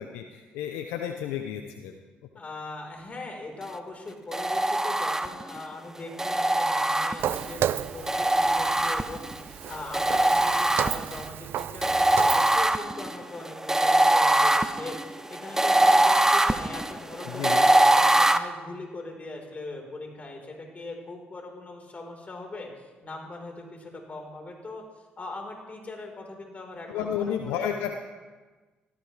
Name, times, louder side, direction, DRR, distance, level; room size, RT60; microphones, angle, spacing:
voice 1, 0.0-1.9 17.2-17.7 26.9-27.9, left 9 dB, 85° left, 5 dB, 0.8 m, -32 dB
voice 2, 2.3-15.0 15.3-24.8 25.2-27.7, left 2 dB, 40° left, 1 dB, 4.5 m, -40 dB
sound 1, 4.3-5.6 6.2-7.5 8.1-9.4 9.9-11.3 11.8-18.4, right 1 dB, 10° right, 0.8 m, -22 dB
Walk footsteps, 7.2-12.6, right 11 dB, 70° right, 0.4 m, -33 dB
17.0 x 15.0 x 3.4 m, 1.3 s
supercardioid pair, 55°, 4 cm